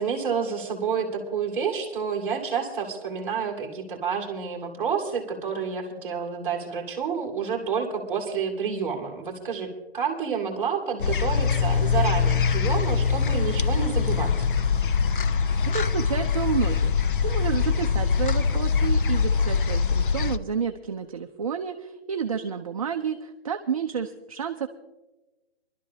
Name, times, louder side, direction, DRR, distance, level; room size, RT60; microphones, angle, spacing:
voice 1, 0.0-14.3, right 6 dB, 5° right, -4 dB, 2.0 m, -29 dB
sound 1, 11.0-20.4, left 6 dB, 55° left, 0.6 m, -23 dB
voice 2, 15.7-16.9 17.2-24.7, right 7 dB, 35° right, 4 dB, 0.5 m, -30 dB
24.0 x 12.0 x 2.8 m, 1.1 s
hypercardioid pair, 165°, 31 cm